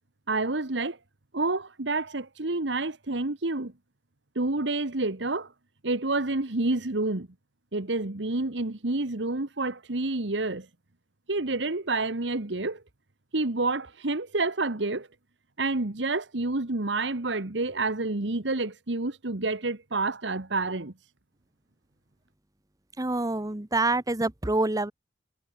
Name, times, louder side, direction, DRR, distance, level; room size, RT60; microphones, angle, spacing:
voice 1, 0.3-1.0 1.3-3.7 4.3-5.5 5.8-7.3 7.7-10.7 11.3-12.8 13.3-15.1 15.6-20.9, right 2 dB, 75° right, 1.6 m, -28 dB
voice 2, 23.0-24.9, right 2 dB, 20° right, 1.0 m, -26 dB
head